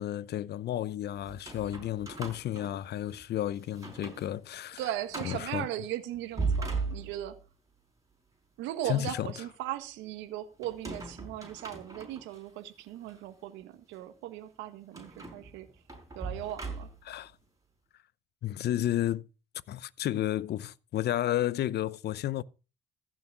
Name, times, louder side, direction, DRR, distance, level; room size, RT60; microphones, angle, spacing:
voice 1, 0.0-4.8 5.2-5.7 8.9-9.3 17.0-17.3 18.4-19.3 19.7-22.4, left 12 dB, 60° left, 0.7 m, -32 dB
sound 1, 1.2-3.3 3.7-4.3 4.6-4.7 5.1-5.5 6.1-7.5 10.6-12.4 13.0-13.2 14.9-17.2, right 4 dB, 20° right, 5.6 m, -38 dB
voice 2, 4.8-7.4 8.6-15.7 16.1-16.9, right 13 dB, 85° right, 1.6 m, -38 dB
15.0 x 6.3 x 6.0 m
supercardioid pair, 75°, 19 cm